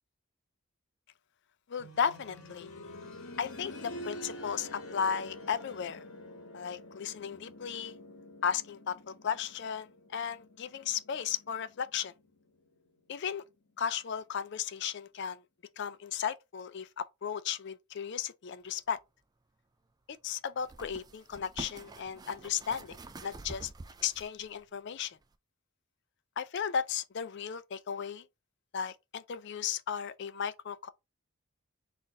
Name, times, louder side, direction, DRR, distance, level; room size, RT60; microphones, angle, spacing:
voice 1, 1.7-2.7 3.4-6.0 6.5-8.0 8.4-12.1 13.1-13.4 13.8-15.4 15.8-19.0 20.1-23.0 23.2-23.7 24.0-25.2 26.4-28.3 28.7-30.9, left 7 dB, 55° left, 0.4 m, -35 dB
sound 1, 1.8-12.5 12.9-13.0 13.9-14.0, left 1 dB, 85° left, 1.0 m, -47 dB
sound 2, 18.8-18.9 20.6-24.6 25.2-25.3, right 2 dB, 20° right, 0.3 m, -47 dB
4.1 x 2.5 x 4.0 m
head